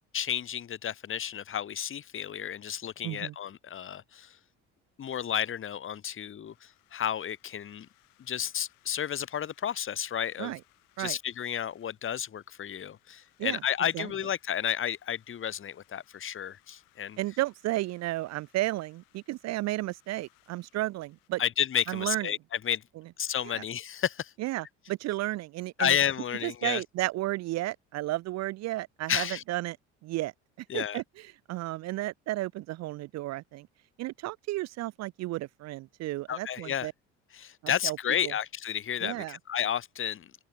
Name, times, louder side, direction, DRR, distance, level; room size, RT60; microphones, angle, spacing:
voice 1, 0.1-4.4 5.0-7.9 8.3-10.6 11.0-17.2 21.4-22.8 23.2-24.3 25.8-26.8 29.1-29.4 30.7-31.0 36.3-36.9 37.3-40.3, left 9 dB, 40° left, 1.4 m, -32 dB
voice 2, 3.0-3.3 10.4-10.6 11.0-11.2 13.4-13.6 13.9-14.1 17.2-21.4 21.9-22.3 23.4-23.6 24.4-26.0 26.4-29.8 30.0-30.3 30.7-31.0 31.5-33.7 34.0-36.9 37.8-38.0 38.2-38.3 39.0-39.4, right 17 dB, 50° right, 0.5 m, -33 dB
sound 1, 6.4-21.3, left 25 dB, 75° left, 6.8 m, -67 dB
open air
supercardioid pair, 75°, 33 cm